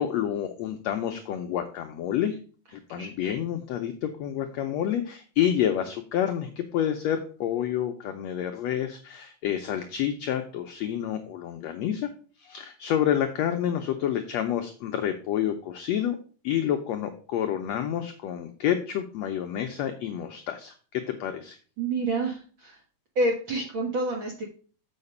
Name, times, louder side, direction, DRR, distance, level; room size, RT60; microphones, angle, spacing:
voice 1, 0.0-2.4 2.7-12.1 12.4-16.2 16.4-21.6, left 10 dB, 85° left, 6 dB, 1.5 m, -29 dB
voice 2, 21.8-22.8 23.1-24.4, right 2 dB, 60° right, 1 dB, 1.3 m, -28 dB
7.3 x 5.8 x 5.4 m, 0.40 s
omnidirectional pair, 3.9 m